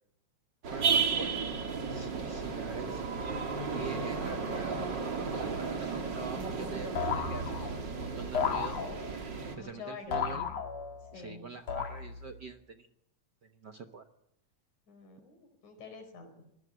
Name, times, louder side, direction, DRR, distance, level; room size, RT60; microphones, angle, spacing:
sound 1, 0.6-9.6, right 5 dB, 40° right, 2.9 m, -33 dB
voice 1, 0.7-1.4 1.8-3.1 3.7-7.6 8.0-8.8 9.6-10.5 11.1-12.9 13.4-14.0, right 5 dB, 55° right, 6 dB, 1.2 m, -44 dB
voice 2, 2.2-2.7 3.8-4.1 9.5-10.5 11.0-11.5 14.9-16.3, left 4 dB, 90° left, 7 dB, 5.9 m, -48 dB
sound 2, 7.0-7.9 8.3-9.3 10.1-11.1 11.7-12.4, left 6 dB, 60° left, 3.0 m, -34 dB
23.5 x 17.0 x 7.7 m, 0.77 s
omnidirectional pair, 3.3 m